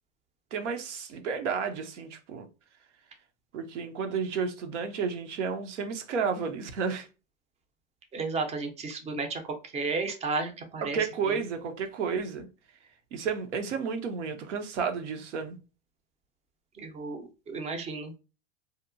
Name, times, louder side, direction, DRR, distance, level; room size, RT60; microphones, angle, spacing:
voice 1, 0.5-2.5 3.5-7.1 10.8-12.5 13.1-15.5, right 6 dB, 85° right, 0.6 m, -32 dB
voice 2, 8.1-11.0 11.3-11.4 16.8-18.1, right 4 dB, 20° right, 0.5 m, -33 dB
2.8 x 2.1 x 2.5 m
hypercardioid pair, 105°, 35 cm